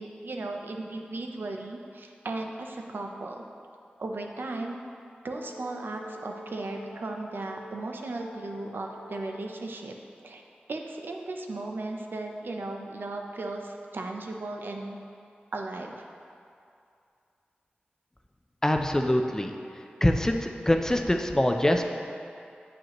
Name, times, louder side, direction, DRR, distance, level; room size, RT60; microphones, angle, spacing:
voice 1, 0.0-3.4 4.0-4.8 5.2-9.9 10.2-10.4 10.7-15.0 15.5-16.1, right 2 dB, 75° right, 2 dB, 0.5 m, -36 dB
Brass instrument, 5.3-9.5, equal, 80° left, 0.5 m, -47 dB
voice 2, 18.6-19.5 20.0-21.8, left 1 dB, 15° left, 4 dB, 0.4 m, -24 dB
7.5 x 5.0 x 2.9 m, 2.5 s
wide cardioid pair, 75°, 4 cm